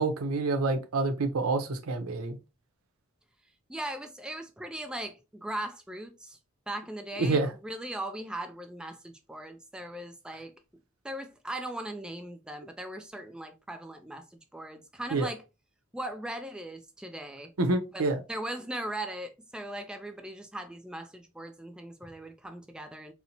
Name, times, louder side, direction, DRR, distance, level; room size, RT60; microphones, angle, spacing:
voice 1, 0.0-2.4 7.2-7.5 15.1-15.3 17.6-18.2, right 3 dB, 85° right, 0.6 m, -27 dB
voice 2, 3.7-6.4 6.7-10.5 11.0-15.4 15.9-17.5 17.9-23.1, right 1 dB, 5° right, 0.3 m, -39 dB
4.2 x 2.1 x 2.7 m
head